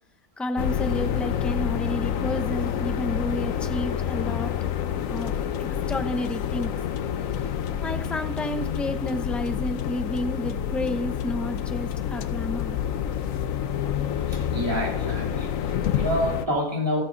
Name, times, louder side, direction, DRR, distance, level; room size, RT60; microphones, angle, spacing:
voice 1, 0.4-4.5 5.1-6.7 7.8-12.8, left 1 dB, ahead, 7 dB, 0.6 m, -31 dB
sound 1, 0.6-16.5, left 9 dB, 65° left, 1.1 m, -28 dB
voice 2, 14.3-17.0, equal, 15° right, -3 dB, 3.6 m, -28 dB
14.5 x 13.5 x 4.1 m, 0.70 s
omnidirectional pair, 1.6 m